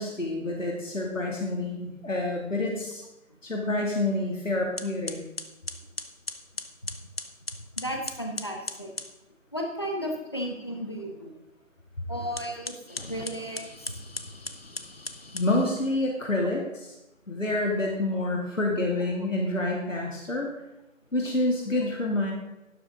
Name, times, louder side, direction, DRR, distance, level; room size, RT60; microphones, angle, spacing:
voice 1, 0.0-3.0 3.4-5.2 15.3-17.0 17.3-20.5 21.1-22.3, left 2 dB, 70° left, -1 dB, 2.7 m, -28 dB
sound 1, 4.2-4.4 4.8-9.1 12.2-15.9, left 2 dB, 50° left, 1.0 m, -39 dB
voice 2, 7.8-8.9 9.5-11.3 12.1-14.0, equal, 20° left, 1 dB, 1.1 m, -34 dB
12.5 x 12.5 x 3.9 m, 0.97 s
figure-of-eight pair, 165°, 40 cm